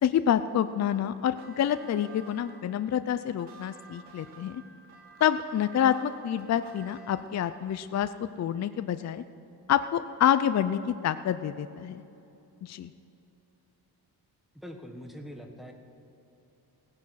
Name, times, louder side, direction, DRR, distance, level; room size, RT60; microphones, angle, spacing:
voice 1, 0.0-4.6 5.2-8.1 8.4-9.2 9.7-12.0 12.6-12.9, left 9 dB, 45° left, 12 dB, 0.4 m, -27 dB
sound 1, 1.2-7.8, right 4 dB, 75° right, 2.0 m, -52 dB
voice 2, 14.5-15.7, equal, ahead, 3 dB, 1.4 m, -43 dB
16.5 x 9.7 x 6.3 m, 3.0 s
wide cardioid pair, 130°, 40 cm